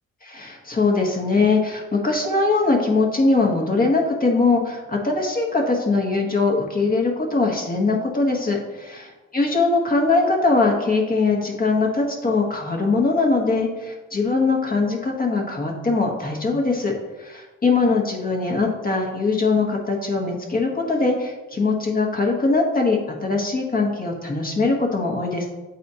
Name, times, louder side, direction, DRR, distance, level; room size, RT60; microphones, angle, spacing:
voice 1, 0.2-8.6 9.3-25.5, left 3 dB, 30° left, 0 dB, 1.3 m, -21 dB
8.1 x 4.1 x 2.8 m, 1.2 s
cardioid pair, 90°, 30 cm